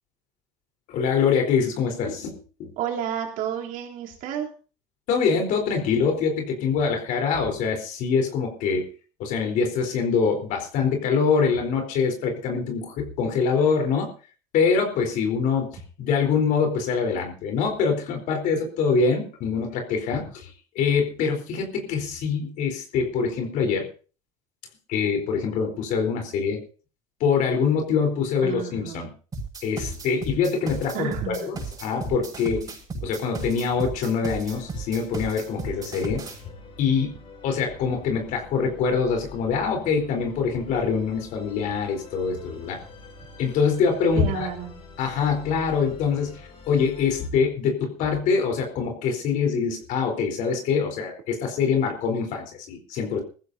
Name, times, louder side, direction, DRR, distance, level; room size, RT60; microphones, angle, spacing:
voice 1, 0.9-2.7 5.1-8.9 9.2-14.1 14.5-23.9 24.9-26.6 27.2-29.1 29.6-32.7 33.0-36.2 36.8-37.2 37.4-42.8 43.4-44.5 45.0-53.2, left 5 dB, 65° left, 3 dB, 4.0 m, -24 dB
voice 2, 2.8-4.5 28.4-29.1 30.9-31.5 44.1-44.7, right 9 dB, 65° right, 1 dB, 3.3 m, -31 dB
sound 1, 29.3-36.4, right 3 dB, 25° right, 6.8 m, -34 dB
Musical instrument, 34.5-47.3, left 4 dB, 40° left, 7.6 m, -46 dB
20.5 x 14.5 x 2.8 m, 0.37 s
supercardioid pair, 110°, 15 cm